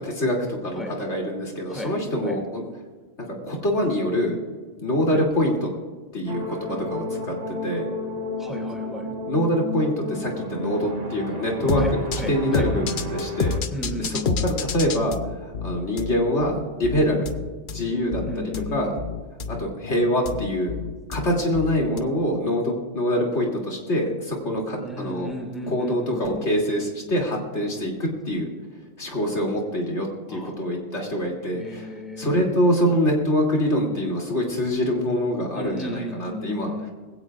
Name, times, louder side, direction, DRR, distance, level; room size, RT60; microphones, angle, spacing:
voice 1, 0.0-2.6 3.2-4.4 4.8-5.7 6.1-7.3 7.6-7.9 9.3-13.6 14.0-17.3 17.7-18.2 18.7-18.9 19.5-20.7 21.1-25.3 25.7-28.5 29.0-31.9 32.2-36.7, equal, 85° left, 0 dB, 3.2 m, -25 dB
sound 1, 6.3-13.6, left 1 dB, 35° right, 1.6 m, -32 dB
voice 2, 8.4-9.1 11.8-11.9 12.2-12.7 13.7-14.4 18.3-19.0 24.8-26.5 30.3-30.5 31.5-32.6 35.6-36.9, left 1 dB, ahead, 1 dB, 2.3 m, -34 dB
sound 2, 11.7-22.0, left 6 dB, 50° left, 0.8 m, -29 dB
20.0 x 16.5 x 2.5 m, 1.4 s
omnidirectional pair, 1.2 m